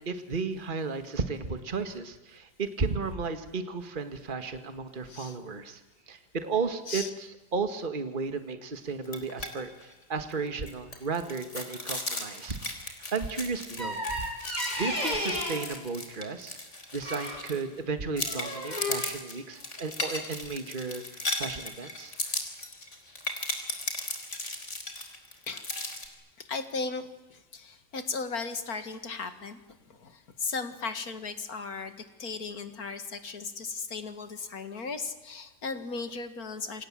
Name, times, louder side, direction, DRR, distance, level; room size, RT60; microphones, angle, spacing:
voice 1, 0.0-5.8 6.1-16.6 16.9-22.2, right 4 dB, 30° right, 9 dB, 1.9 m, -34 dB
voice 2, 5.1-5.4 6.9-7.1 25.5-25.9 26.4-29.6 29.9-36.9, left 4 dB, 65° left, 10 dB, 2.5 m, -36 dB
sound 1, 9.0-9.5 9.8-9.9 10.3-17.8 18.2-26.1, left 2 dB, 45° left, 4.2 m, -36 dB
sound 2, 13.8-15.7 17.0-17.4 18.1-19.0, left 1 dB, 25° left, 6.2 m, -33 dB
28.5 x 27.0 x 7.6 m, 1.1 s
omnidirectional pair, 1.7 m